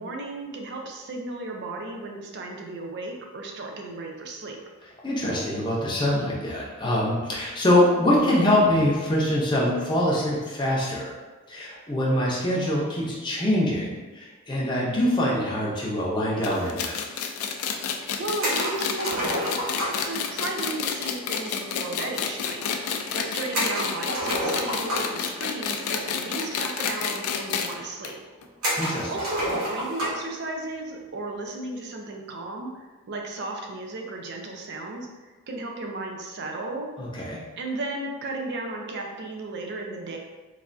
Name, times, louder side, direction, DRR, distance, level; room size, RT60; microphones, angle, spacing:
voice 1, 0.0-4.6 18.2-19.6 20.0-22.6 23.1-28.2 29.1-36.9 37.6-40.2, right 2 dB, 55° right, 1 dB, 0.4 m, -34 dB
voice 2, 5.0-11.1 11.5-17.0 28.8-29.1 37.0-37.4, left 1 dB, 20° left, -5 dB, 0.6 m, -24 dB
sound 1, 16.4-27.7 28.0-28.1 28.4-28.5 29.4-29.5, left 7 dB, 90° left, 0.3 m, -30 dB
sound 2, 18.4-20.1 23.5-25.3 26.3-26.4 26.7-26.8 27.6-27.7 28.6-30.3, equal, 85° right, 1.1 m, -29 dB
3.2 x 2.3 x 2.5 m, 1.3 s
head